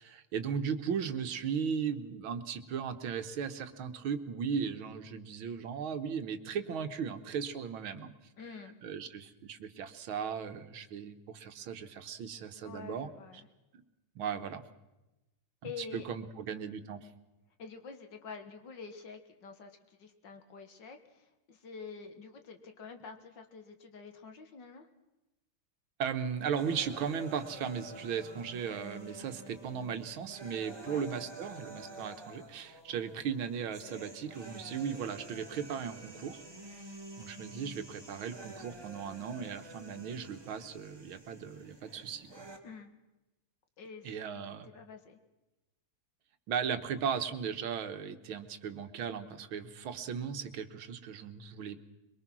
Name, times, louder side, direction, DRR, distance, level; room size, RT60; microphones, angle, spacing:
voice 1, 0.0-8.1 8.8-13.1 14.2-14.6 15.6-17.1 26.0-36.4 37.2-42.5 44.0-44.7 46.5-51.8, right 7 dB, 80° right, 9 dB, 1.9 m, -37 dB
voice 2, 8.4-8.8 12.6-13.5 15.6-16.1 17.6-24.9 30.8-31.1 42.6-42.9 43.8-44.1 44.6-45.2, left 5 dB, 60° left, 6 dB, 2.1 m, -47 dB
sound 1, 26.6-42.6, right 2 dB, 10° right, 1.8 m, -49 dB
22.5 x 22.5 x 6.1 m, 1.0 s
omnidirectional pair, 2.2 m